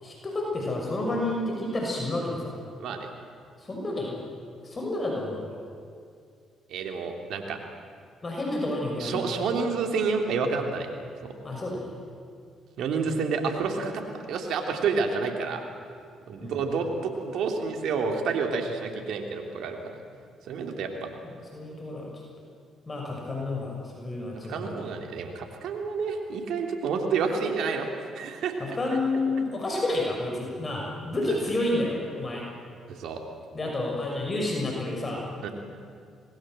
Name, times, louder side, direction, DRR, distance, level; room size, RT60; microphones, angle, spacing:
voice 1, 0.0-2.6 3.6-4.2 4.6-5.6 8.2-9.2 11.4-11.9 16.4-16.5 21.2-22.1 22.9-24.7 28.6-32.4 33.5-35.5, left 2 dB, 35° left, -1 dB, 6.2 m, -30 dB
voice 2, 6.7-7.6 9.0-10.9 11.2-11.3 12.8-14.0 14.3-15.6 16.3-20.0 20.5-21.1 24.5-27.9 28.1-28.6 32.9-33.2 35.4-35.5, right 5 dB, 70° right, 3 dB, 3.3 m, -29 dB
26.0 x 20.5 x 7.8 m, 2.3 s
supercardioid pair, 55°, 0 cm